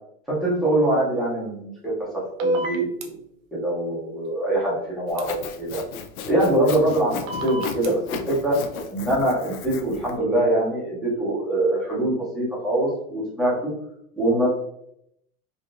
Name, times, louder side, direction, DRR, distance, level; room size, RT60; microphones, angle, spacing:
voice 1, 0.3-1.9 2.4-3.2 3.5-5.8 6.3-7.1 7.4-8.6 8.9-13.7 14.1-14.5, right 1 dB, ahead, -9 dB, 0.4 m, -23 dB
sound 1, 2.4-3.1 5.2-5.3 7.3-7.9, right 1 dB, 70° right, 0.7 m, -26 dB
Sawing, 5.1-10.1, left 6 dB, 70° left, 0.6 m, -35 dB
3.5 x 2.5 x 2.4 m, 0.75 s
supercardioid pair, 155°, 43 cm